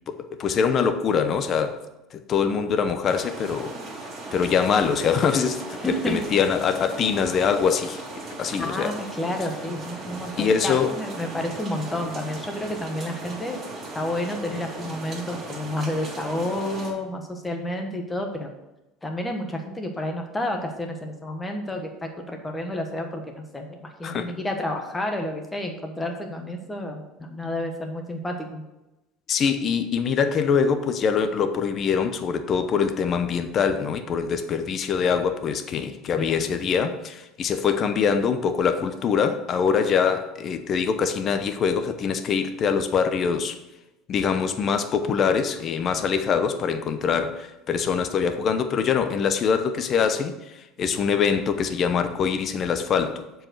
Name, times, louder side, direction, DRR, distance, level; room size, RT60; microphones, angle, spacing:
voice 1, 0.1-1.8 2.1-3.7 4.3-5.6 6.1-8.0 8.4-8.9 10.4-10.9 24.0-24.3 29.3-43.6 44.1-53.3, left 6 dB, 35° left, 8 dB, 0.7 m, -23 dB
sound 1, 3.0-16.9, right 2 dB, 30° right, 2.8 m, -37 dB
voice 2, 5.8-6.2 8.6-13.6 13.9-18.5 19.0-28.6 36.2-36.5, left 1 dB, 10° left, 3 dB, 1.4 m, -30 dB
7.4 x 4.8 x 6.4 m, 0.97 s
cardioid pair, 135°, 0 cm